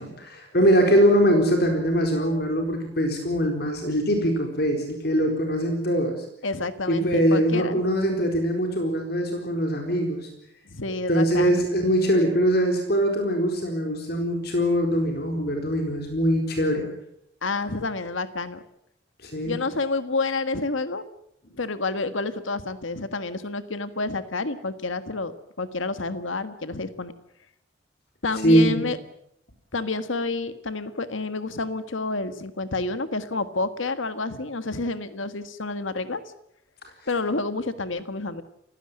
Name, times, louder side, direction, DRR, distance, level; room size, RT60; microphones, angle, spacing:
voice 1, 0.0-6.2 6.9-10.3 11.1-16.9 19.2-19.6 28.4-28.8, equal, 50° left, 3 dB, 4.2 m, -22 dB
voice 2, 6.4-7.8 10.7-11.6 17.4-18.6 19.4-21.0 21.6-27.1 28.2-29.0 29.7-36.2 37.1-38.4, left 3 dB, 80° left, 11 dB, 1.6 m, -29 dB
30.0 x 17.0 x 8.9 m, 0.75 s
head